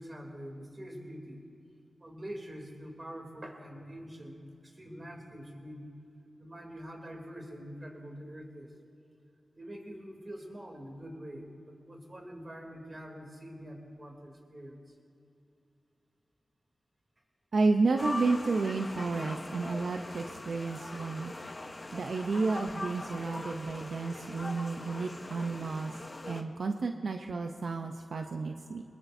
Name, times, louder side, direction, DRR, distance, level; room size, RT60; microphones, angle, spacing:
voice 1, 0.0-1.4 2.0-5.9 6.4-8.7 9.6-14.8, equal, 35° right, 1 dB, 3.1 m, -45 dB
voice 2, 17.5-21.3 21.9-26.0 26.2-28.8, right 3 dB, 75° right, 4 dB, 0.7 m, -31 dB
sound 1, 18.0-26.4, left 2 dB, 35° left, 1.0 m, -41 dB
23.0 x 20.5 x 2.7 m, 2.6 s
cardioid pair, 65°, 0 cm